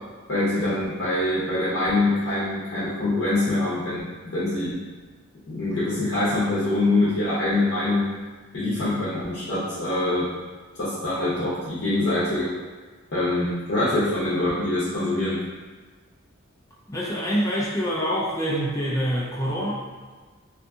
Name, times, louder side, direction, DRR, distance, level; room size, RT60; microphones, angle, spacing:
voice 1, 0.3-4.8 5.5-8.1 8.5-10.3 10.8-12.5 13.1-15.4, left 2 dB, 55° left, -11 dB, 0.7 m, -24 dB
voice 2, 16.9-19.7, equal, 15° left, -6 dB, 0.4 m, -25 dB
2.6 x 2.6 x 2.3 m, 1.4 s
head